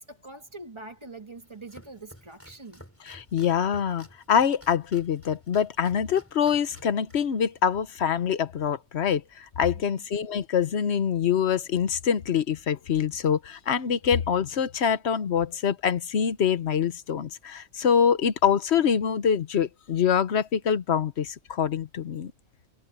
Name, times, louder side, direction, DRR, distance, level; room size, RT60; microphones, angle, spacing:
voice 1, 0.0-2.9 10.0-10.1, right 2 dB, 25° right, 1.5 m, -44 dB
Domestic sounds home sounds, 1.3-8.3, equal, 10° left, 7.6 m, -53 dB
voice 2, 3.1-22.3, left 7 dB, 65° left, 1.2 m, -25 dB
omnidirectional pair, 1.3 m